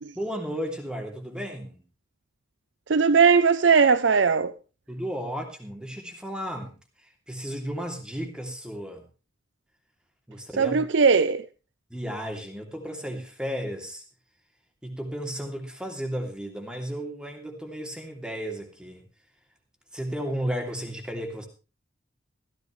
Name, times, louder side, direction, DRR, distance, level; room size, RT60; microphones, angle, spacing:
voice 1, 0.1-1.8 4.9-6.7 7.3-9.0 10.3-10.8 11.9-14.0 14.8-19.0 19.9-21.5, equal, 5° right, 2.9 m, -34 dB
voice 2, 2.9-4.5 10.6-11.4, right 5 dB, 75° right, 0.6 m, -19 dB
15.5 x 15.0 x 3.2 m
head